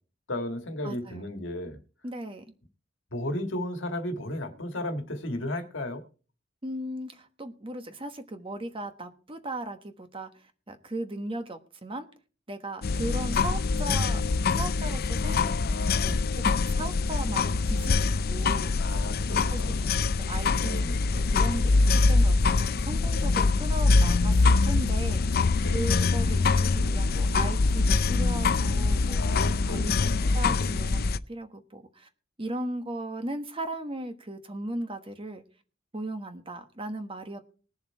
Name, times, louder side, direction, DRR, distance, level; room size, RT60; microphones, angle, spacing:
voice 1, 0.3-1.8 3.1-6.0 15.2-16.2 18.8-19.9 20.6-21.0 25.6-25.9 29.2-30.5, left 1 dB, 65° left, 1.7 m, -35 dB
voice 2, 0.8-1.3 2.0-2.5 6.6-10.3 10.7-12.1 12.5-14.2 14.5-15.5 16.0-18.9 19.3-20.9 21.2-25.4 25.7-30.0 30.3-31.0 31.3-32.1 32.4-35.4 35.9-37.4, right 1 dB, 25° right, 1.2 m, -37 dB
sound 1, 12.8-31.2, left 3 dB, 50° left, 0.5 m, -24 dB
20.5 x 7.1 x 4.5 m
head